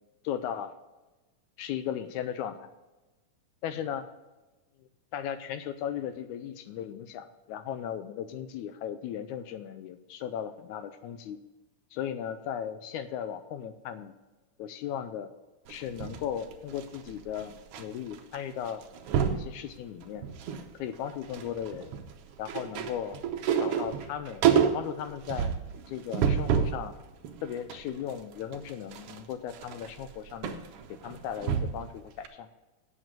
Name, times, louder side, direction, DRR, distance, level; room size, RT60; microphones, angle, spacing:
voice 1, 0.2-0.7 1.6-2.7 3.6-4.0 5.1-11.4 11.9-14.1 14.6-15.3 15.7-18.8 19.3-20.3 20.7-21.9 22.4-23.2 23.6-24.4 24.7-25.5 25.9-26.9 27.4-30.6 30.9-32.5, left 9 dB, 80° left, 11 dB, 1.8 m, -36 dB
sound 1, 15.7-17.8 18.1-18.4 18.6-19.5 20.0-20.7 21.0-26.8 27.2-31.9 32.2-32.3, right 8 dB, 90° right, 1.3 m, -29 dB
8.3 x 7.3 x 7.4 m, 1.1 s
omnidirectional pair, 3.8 m